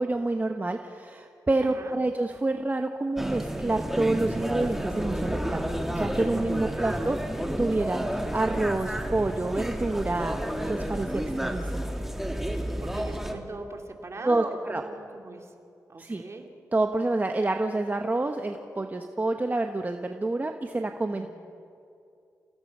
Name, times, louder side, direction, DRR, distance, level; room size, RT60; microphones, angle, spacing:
voice 1, 0.0-5.6 5.9-7.2 7.6-10.4 10.6-11.9 14.2-14.8 16.0-16.2 16.7-21.3, right 2 dB, 25° right, 5 dB, 1.1 m, -28 dB
voice 2, 1.6-2.0 6.7-7.2 12.8-15.5 15.9-16.6 21.1-21.3, right 2 dB, 45° right, 3 dB, 2.6 m, -41 dB
sound 1, 3.2-13.3, right 1 dB, 5° right, 2.1 m, -31 dB
27.5 x 17.0 x 5.4 m, 2.5 s
cardioid pair, 65°, 6 cm